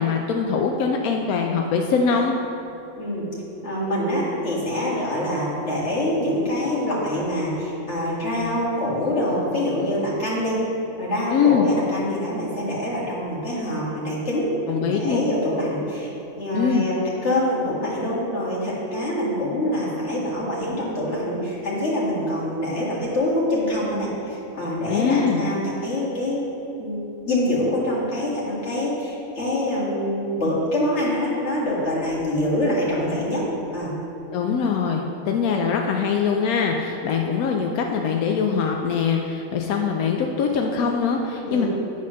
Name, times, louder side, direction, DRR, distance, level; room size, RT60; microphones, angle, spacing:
voice 1, 0.0-2.3 11.3-11.7 14.7-15.2 16.5-16.8 24.9-25.4 34.3-41.7, left 6 dB, 90° left, 2 dB, 1.1 m, -22 dB
voice 2, 2.9-3.3 3.6-10.6 11.0-17.0 17.2-26.5 26.8-27.0 27.3-33.4 33.7-33.9 41.4-41.7, left 1 dB, 50° left, -7 dB, 2.3 m, -25 dB
9.8 x 4.2 x 6.2 m, 3.0 s
omnidirectional pair, 1.5 m